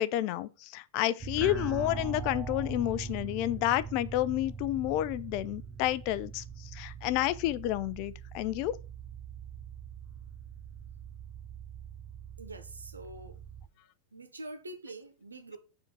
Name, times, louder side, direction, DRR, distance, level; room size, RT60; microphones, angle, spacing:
voice 1, 0.0-6.4 6.7-8.8, left 14 dB, 45° left, 0.4 m, -30 dB
sound 1, 1.2-13.7, right 5 dB, 20° right, 0.7 m, -42 dB
voice 2, 12.4-13.6 14.1-15.6, right 2 dB, 75° right, 1.2 m, -45 dB
7.0 x 3.7 x 5.8 m
figure-of-eight pair, 90°, 0 cm